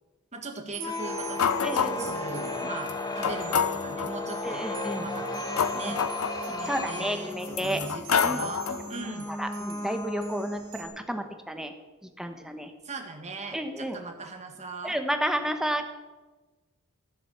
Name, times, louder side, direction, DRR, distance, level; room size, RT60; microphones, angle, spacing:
voice 1, 0.3-4.7 4.9-6.0 6.4-9.3 12.8-15.0, right 3 dB, 30° right, 4 dB, 1.8 m, -40 dB
sound 1, 0.7-11.1, left 2 dB, 20° left, 1.2 m, -35 dB
sound 2, 0.7-10.8, right 8 dB, 60° right, 1.9 m, -47 dB
sound 3, 1.4-2.2 2.9-3.0 3.2-4.2 5.0-6.9 7.4-8.9, left 7 dB, 70° left, 0.6 m, -28 dB
voice 2, 1.6-2.1 4.4-5.1 5.9-6.0 6.7-7.8 8.2-8.4 9.4-11.7 12.2-12.7 13.5-14.0 14.8-15.9, equal, ahead, 6 dB, 1.1 m, -31 dB
14.5 x 7.7 x 7.2 m, 1.2 s
head